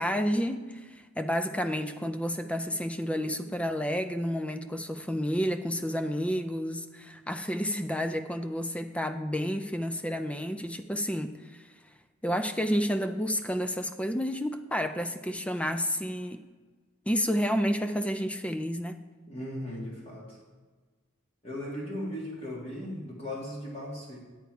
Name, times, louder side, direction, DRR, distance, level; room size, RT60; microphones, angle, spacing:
voice 1, 0.0-11.7 12.2-16.4 17.1-19.0, equal, 5° left, 8 dB, 0.4 m, -30 dB
voice 2, 19.3-20.4 21.4-24.2, left 1 dB, 25° left, -4 dB, 2.0 m, -37 dB
9.3 x 8.5 x 4.7 m, 1.4 s
head